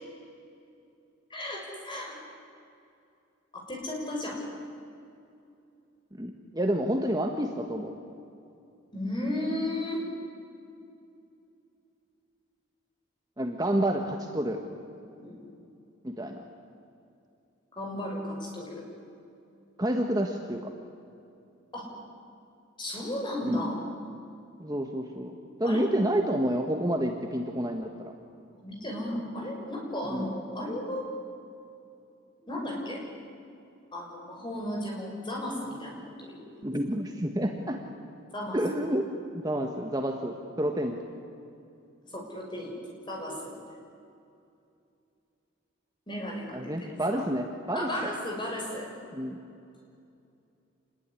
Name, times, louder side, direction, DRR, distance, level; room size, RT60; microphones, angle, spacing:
voice 1, 1.3-2.2 3.5-4.4 8.9-10.0 15.2-15.4 17.7-18.8 21.7-21.9 22.8-23.8 25.6-25.9 28.5-31.1 32.5-33.0 33.9-36.5 38.3-38.6 42.1-42.7 43.1-43.6 46.1-47.3 47.7-48.9, left 1 dB, 25° left, -1 dB, 6.4 m, -34 dB
voice 2, 6.2-7.9 13.4-14.6 16.0-16.4 19.8-20.7 23.4-23.6 24.6-25.3 25.6-28.1 30.1-30.3 36.6-37.8 38.5-39.1 39.3-41.0 46.5-48.1 49.1-49.4, right 1 dB, 20° right, 3 dB, 1.4 m, -29 dB
27.0 x 20.5 x 9.9 m, 2.6 s
head